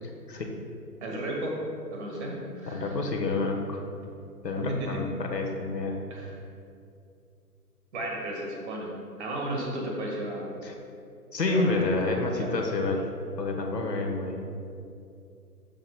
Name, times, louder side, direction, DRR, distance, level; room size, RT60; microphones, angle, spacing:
voice 1, 0.0-0.5 2.7-3.8 4.4-6.0 10.6-10.7 11.3-13.1 13.4-14.5, left 3 dB, 85° left, 1 dB, 1.3 m, -29 dB
voice 2, 1.0-1.6 1.9-2.9 4.6-4.9 6.1-6.3 7.9-8.9 9.2-10.6 11.5-12.5, right 1 dB, 45° right, -1 dB, 1.8 m, -34 dB
12.0 x 6.6 x 2.2 m, 2.5 s
figure-of-eight pair, 140°, 48 cm